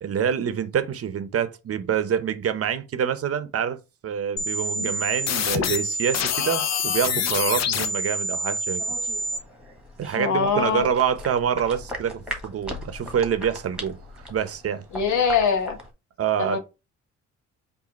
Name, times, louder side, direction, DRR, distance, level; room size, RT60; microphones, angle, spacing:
voice 1, 0.0-8.8 10.0-14.8 16.2-16.6, right 8 dB, 50° right, 0.8 m, -26 dB
sound 1, 4.4-9.4, left 3 dB, 60° left, 0.8 m, -26 dB
sound 2, 8.8-15.9, equal, 5° right, 1.4 m, -39 dB
voice 2, 10.1-10.9 14.9-15.8 16.4-16.6, left 6 dB, 75° left, 1.2 m, -23 dB
4.9 x 2.7 x 4.1 m
cardioid pair, 90°, 30 cm